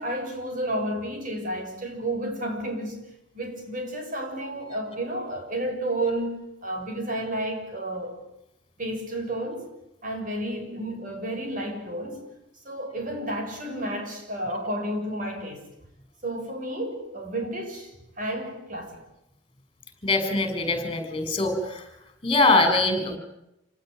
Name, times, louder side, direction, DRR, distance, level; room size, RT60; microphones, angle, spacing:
voice 1, 0.0-3.0 3.3-8.2 8.8-9.7 10.0-12.2 12.7-15.6 16.2-19.0, right 1 dB, 45° right, 6.9 m, -31 dB
voice 2, 20.0-21.9 22.2-23.2, left 2 dB, 25° left, 6.2 m, -23 dB
28.0 x 19.5 x 9.2 m
head